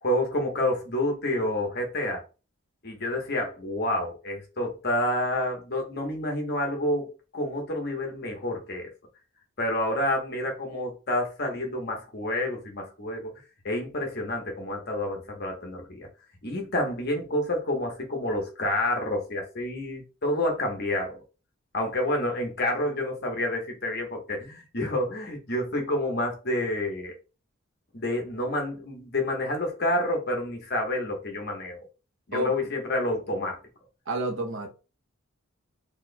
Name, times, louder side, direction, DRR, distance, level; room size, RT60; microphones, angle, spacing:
voice 1, 0.0-2.2 2.8-8.9 9.6-13.3 13.6-16.1 16.4-21.2 21.7-27.1 27.9-31.8 32.3-33.6, left 1 dB, 50° left, 1.1 m, -29 dB
voice 2, 34.1-34.7, equal, 65° right, 0.8 m, -29 dB
4.3 x 3.0 x 2.2 m
head